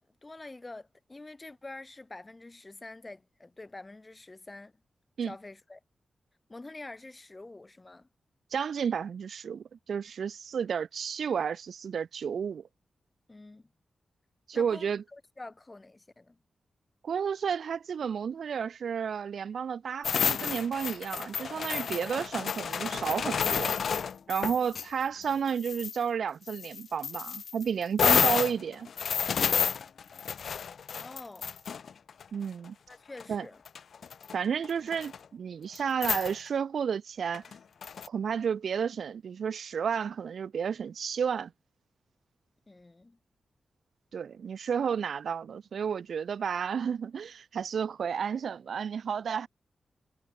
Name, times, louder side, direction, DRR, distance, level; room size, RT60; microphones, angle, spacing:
voice 1, 0.0-4.7 5.2-5.8 6.5-8.1 13.3-13.7 14.5-16.4 24.2-24.7 30.9-31.5 32.9-33.6 42.7-43.2, left 2 dB, 20° left, 7.8 m, -47 dB
voice 2, 8.5-12.7 14.5-15.0 17.0-23.8 24.3-28.9 32.3-32.7 33.3-33.4 34.3-37.4 38.1-41.5 44.1-49.5, right 7 dB, 70° right, 4.1 m, -32 dB
sound 1, 20.0-24.9 25.2-26.0 26.5-32.2 33.2-33.3 33.7-34.3 34.6-35.2 35.8-35.9 36.0-36.3 37.3-38.1, left 6 dB, 65° left, 4.0 m, -30 dB
wide cardioid pair, 175°, 0 cm